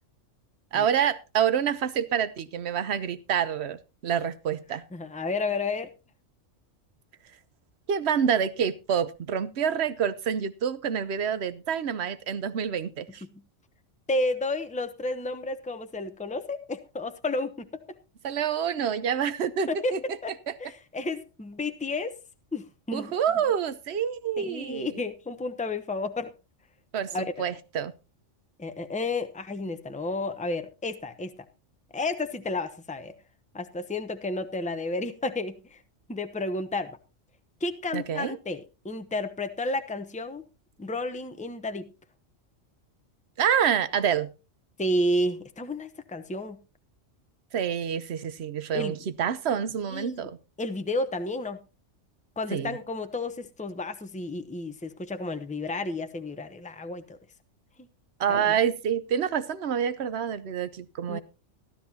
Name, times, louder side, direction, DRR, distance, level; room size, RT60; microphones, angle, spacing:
voice 1, 0.7-4.8 7.9-13.2 18.2-20.0 22.9-24.9 26.9-27.9 37.9-38.4 43.4-44.3 47.5-50.4 52.5-52.8 58.2-61.2, right 8 dB, 60° right, 14 dB, 1.1 m, -27 dB
voice 2, 4.9-5.9 14.1-17.7 19.7-20.3 20.6-22.1 22.5-23.1 24.4-26.3 27.1-27.5 28.6-31.4 31.9-33.2 33.5-35.8 36.1-37.0 37.6-40.4 40.8-41.9 44.8-46.6 48.7-49.0 49.9-50.3 50.6-51.6 52.4-57.2 57.8-57.9 58.3-58.6 61.1-61.2, left 2 dB, 5° left, 9 dB, 0.7 m, -31 dB
15.0 x 12.5 x 2.8 m, 0.29 s
omnidirectional pair, 1.3 m